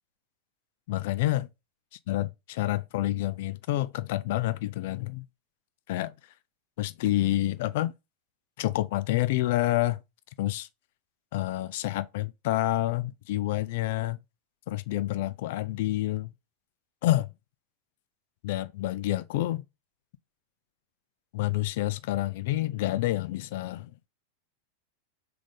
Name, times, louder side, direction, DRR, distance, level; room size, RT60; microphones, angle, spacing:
voice 1, 0.9-1.5 2.1-5.3 5.9-6.1 6.8-7.9 8.6-10.0 10.4-10.7 11.3-14.2 14.7-16.3 17.0-17.3 18.4-19.6 21.3-23.9, left 15 dB, 50° left, 0.3 m, -28 dB
3.6 x 3.3 x 3.8 m
figure-of-eight pair, 90°, 0 cm